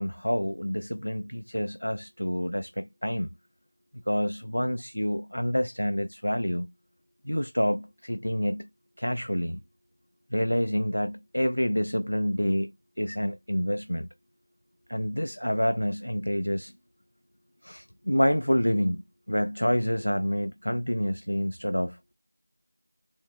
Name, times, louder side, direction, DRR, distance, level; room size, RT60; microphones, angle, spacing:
voice 1, 0.0-3.3 3.9-6.7 7.2-8.7 9.0-9.6 10.3-14.1 14.9-16.7 17.6-22.0, equal, 75° left, 0.3 m, -28 dB
3.6 x 3.0 x 2.4 m
figure-of-eight pair, 175°, 0 cm